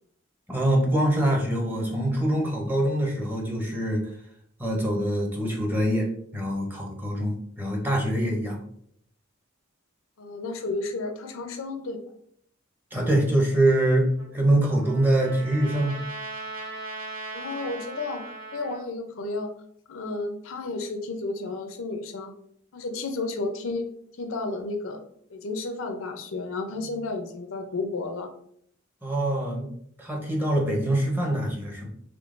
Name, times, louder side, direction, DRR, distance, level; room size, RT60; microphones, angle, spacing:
voice 1, 0.5-4.1 4.6-6.1 6.3-8.6 12.9-16.0 29.0-29.7 30.0-31.9, right 1 dB, 10° right, -1 dB, 0.7 m, -24 dB
voice 2, 10.2-12.0 17.3-19.5 19.9-22.3 22.7-23.9 24.2-25.0 25.3-28.3, left 3 dB, 85° left, 6 dB, 0.6 m, -32 dB
Trumpet, 14.2-18.8, right 3 dB, 80° right, 1.0 m, -39 dB
3.6 x 3.4 x 2.5 m, 0.67 s
head